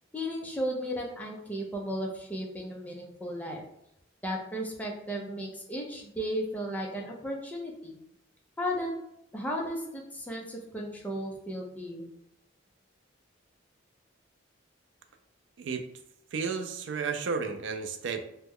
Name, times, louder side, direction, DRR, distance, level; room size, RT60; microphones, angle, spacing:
voice 1, 0.1-3.6 4.2-8.0 8.6-8.9 9.3-12.1, equal, 10° left, -1 dB, 0.5 m, -35 dB
voice 2, 16.3-18.2, right 5 dB, 65° right, 7 dB, 0.4 m, -32 dB
3.0 x 2.1 x 3.5 m, 0.77 s
head